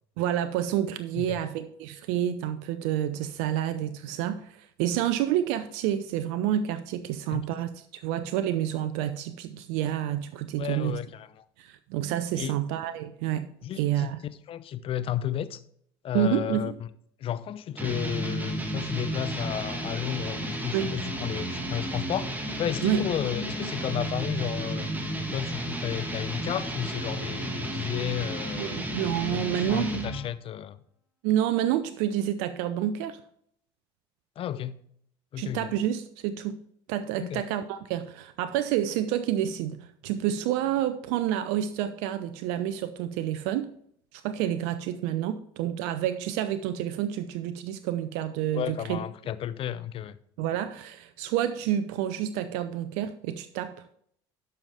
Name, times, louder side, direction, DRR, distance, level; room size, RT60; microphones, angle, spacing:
voice 1, 0.2-11.0 11.6-13.5 13.8-14.2 16.1-16.7 20.7-20.9 22.8-23.1 28.6-29.9 31.2-33.2 35.4-36.6 36.9-43.7 44.1-49.0 50.4-53.8, right 11 dB, 75° right, 0.6 m, -29 dB
voice 2, 10.6-11.4 12.4-12.5 13.6-14.1 14.5-15.6 16.0-16.7 17.2-24.9 25.3-30.8 34.4-34.7 35.3-35.7 37.2-37.4 48.5-50.2, left 10 dB, 45° left, 0.7 m, -33 dB
sound 1, 17.8-30.3, right 1 dB, 15° right, 1.8 m, -33 dB
12.0 x 5.6 x 3.5 m
hypercardioid pair, 75°, 13 cm